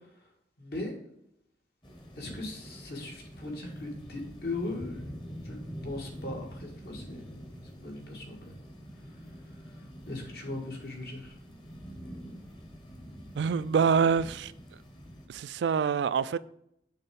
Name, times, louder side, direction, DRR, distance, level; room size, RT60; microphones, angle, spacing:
voice 1, 0.6-1.0 2.2-5.0 5.4-7.4 7.7-8.5 10.1-11.4, left 2 dB, 65° left, 1.8 m, -39 dB
sound 1, 1.8-15.3, equal, 25° left, 1.0 m, -45 dB
voice 2, 13.4-14.5 15.3-16.4, right 6 dB, 80° right, 0.3 m, -26 dB
6.6 x 3.3 x 5.1 m
head